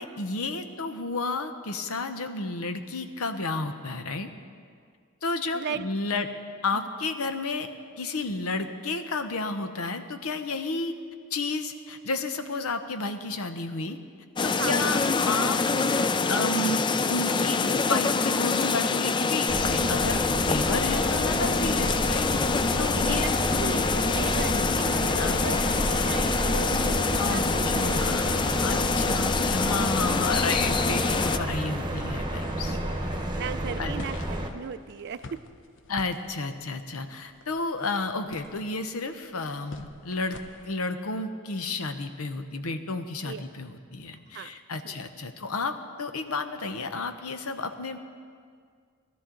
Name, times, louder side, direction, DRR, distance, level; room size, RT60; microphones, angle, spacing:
voice 1, 0.0-4.3 5.2-6.3 6.6-7.7 8.0-11.0 11.3-14.0 14.4-15.0 15.2-15.6 16.3-23.7 25.2-25.7 27.2-32.8 33.8-33.9 35.9-48.0, left 3 dB, 90° left, 8 dB, 0.9 m, -32 dB
voice 2, 5.5-5.9 14.6-14.9 23.0-23.3 23.6-28.4 32.7-33.0 33.4-35.4 43.2-43.5 44.3-44.5 44.8-45.0, right 7 dB, 50° right, 13 dB, 0.4 m, -37 dB
sound 1, 14.4-31.4, left 4 dB, 20° left, 0.3 m, -26 dB
sound 2, 19.5-34.5, right 1 dB, 20° right, 1.0 m, -30 dB
sound 3, 34.0-40.7, left 2 dB, 60° left, 0.7 m, -47 dB
19.0 x 12.5 x 3.9 m, 2.1 s
head